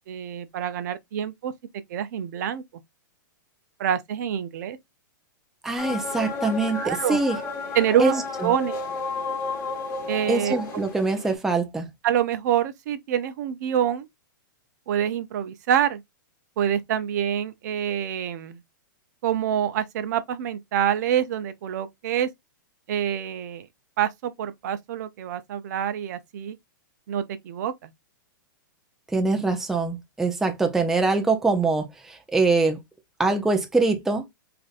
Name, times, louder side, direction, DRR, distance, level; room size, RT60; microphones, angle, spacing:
voice 1, 0.1-1.5 1.9-2.6 3.8-4.8 6.1-6.2 6.7-7.2 7.7-8.8 10.1-10.6 12.0-14.1 14.9-16.0 16.6-18.6 19.2-22.3 22.9-23.7 24.0-26.6 27.1-27.9, right 10 dB, 55° right, 0.5 m, -26 dB
voice 2, 5.6-7.4 8.0-8.1 8.4-8.5 10.3-11.9 29.1-32.8 33.2-34.3, right 3 dB, 5° right, 0.4 m, -23 dB
sound 1, 5.8-11.3, left 4 dB, 25° left, 1.3 m, -32 dB
3.7 x 2.6 x 2.4 m
hypercardioid pair, 145°, 11 cm